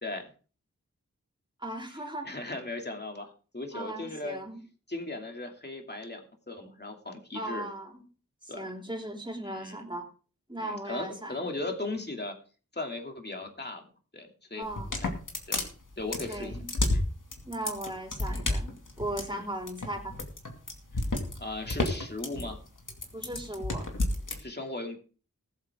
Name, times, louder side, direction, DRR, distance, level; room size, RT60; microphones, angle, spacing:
voice 1, 1.6-2.3 3.7-4.6 7.3-8.0 8.5-10.0 10.5-11.4 14.5-15.0 16.3-16.7 17.4-20.2 23.1-23.9, right 1 dB, 15° right, 2 dB, 3.4 m, -37 dB
voice 2, 2.2-4.4 4.9-6.2 6.5-7.7 8.5-8.7 9.4-9.8 10.6-12.3 12.7-13.8 14.1-14.6 15.0-15.1 15.5-15.6 16.0-16.5 16.9-17.0 19.3-19.5 21.4-22.6 24.4-25.0, left 2 dB, 35° left, 3 dB, 2.7 m, -37 dB
sound 1, 14.6-24.4, left 2 dB, 80° left, 2.4 m, -31 dB
19.5 x 8.0 x 3.7 m, 0.38 s
wide cardioid pair, 50°, 31 cm